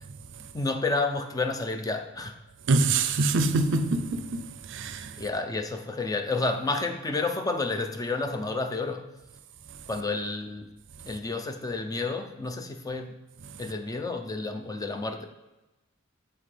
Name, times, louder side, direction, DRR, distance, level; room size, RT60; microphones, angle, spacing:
voice 1, 0.5-2.4 5.2-9.1 9.9-10.7 11.1-13.2 13.6-15.3, left 3 dB, 15° left, 0.4 m, -30 dB
voice 2, 2.7-4.4 4.7-5.1, right 3 dB, 60° right, 0.5 m, -24 dB
7.5 x 4.4 x 3.3 m
head